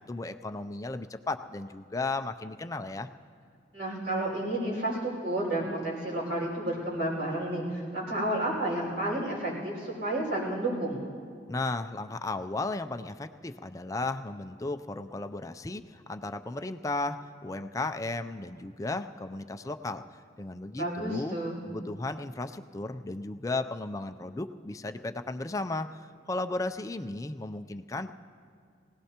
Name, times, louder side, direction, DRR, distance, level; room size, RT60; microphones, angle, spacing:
voice 1, 0.1-3.1 11.5-20.0 20.4-21.4 21.7-26.0 26.3-28.1, left 2 dB, 15° left, 8 dB, 0.4 m, -35 dB
voice 2, 3.7-11.0 20.8-21.6, right 1 dB, 60° right, -5 dB, 5.0 m, -31 dB
23.5 x 17.5 x 2.9 m, 2.2 s
head